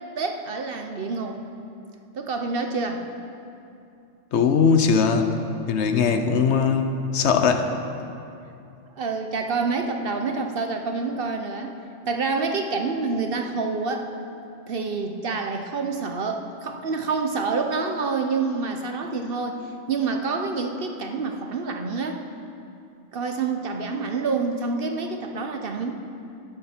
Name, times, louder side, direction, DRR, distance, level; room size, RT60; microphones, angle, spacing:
voice 1, 0.0-1.4 2.1-3.1 9.0-11.8 12.1-14.1 14.7-19.6 19.9-22.2 23.1-25.9, right 4 dB, 55° right, 5 dB, 0.9 m, -27 dB
voice 2, 4.3-5.3 5.7-7.7, left 5 dB, 65° left, 7 dB, 1.0 m, -20 dB
13.0 x 10.0 x 4.4 m, 2.6 s
omnidirectional pair, 1.3 m